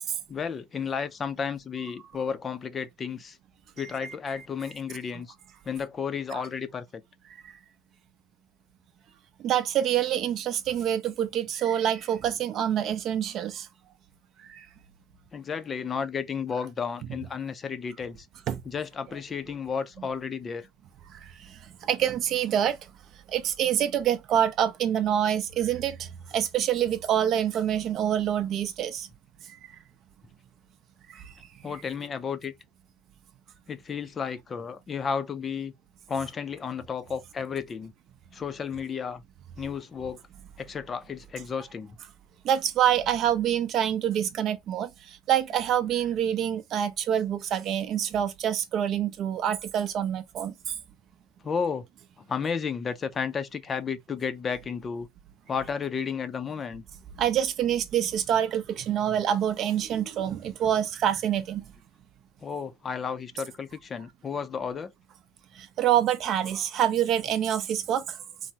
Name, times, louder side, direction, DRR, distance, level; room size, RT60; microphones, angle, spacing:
voice 1, 0.3-3.4 3.8-5.3 5.7-7.0 15.3-18.3 18.7-20.7 31.6-32.5 33.7-35.7 36.1-37.9 38.3-39.2 39.6-40.2 40.6-42.0 51.4-51.9 52.2-55.1 55.5-56.8 62.4-64.9, left 6 dB, 30° left, 0.4 m, -32 dB
voice 2, 9.4-13.7 14.4-14.7 18.5-18.6 21.1-22.8 23.3-29.1 29.5-29.6 31.1-31.3 42.4-50.7 57.2-61.6 65.5-68.2, right 10 dB, 50° right, 0.5 m, -26 dB
3.3 x 2.0 x 2.7 m
supercardioid pair, 100°, 0 cm